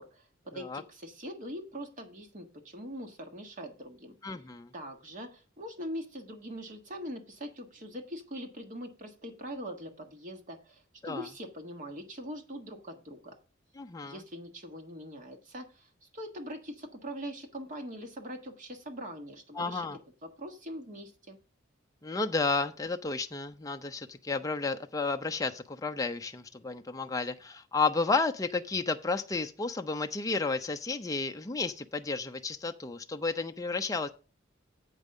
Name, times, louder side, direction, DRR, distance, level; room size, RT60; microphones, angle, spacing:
voice 1, 0.0-4.1 4.7-13.4 14.0-19.9 20.2-21.4, equal, 40° right, 5 dB, 1.4 m, -42 dB
voice 2, 4.2-4.7 11.0-11.2 13.8-14.2 19.6-20.0 22.0-34.1, left 4 dB, 20° left, 6 dB, 0.5 m, -32 dB
8.2 x 5.3 x 6.4 m, 0.34 s
head